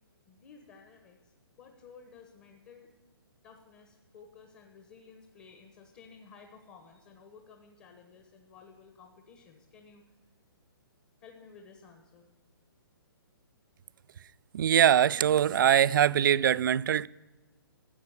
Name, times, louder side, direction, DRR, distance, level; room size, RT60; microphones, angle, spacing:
voice 1, 0.3-2.9 3.4-10.0 11.2-12.3, left 5 dB, 25° left, 1.5 m, -54 dB
voice 2, 14.5-17.1, right 9 dB, 55° right, 0.4 m, -22 dB
13.5 x 8.9 x 9.1 m
hypercardioid pair, 155°, 13 cm